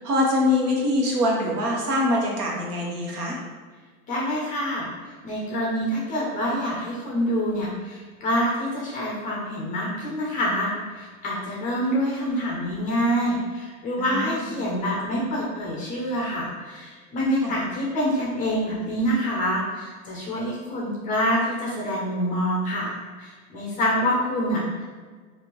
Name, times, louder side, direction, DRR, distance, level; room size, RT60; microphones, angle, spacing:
voice 1, 0.0-3.4 14.0-14.5 17.4-17.5, left 1 dB, 85° right, -2 dB, 1.1 m, -24 dB
voice 2, 4.1-4.9 5.2-24.9, equal, 20° left, -3 dB, 0.4 m, -26 dB
3.5 x 2.5 x 2.9 m, 1.5 s
hypercardioid pair, 120°, 46 cm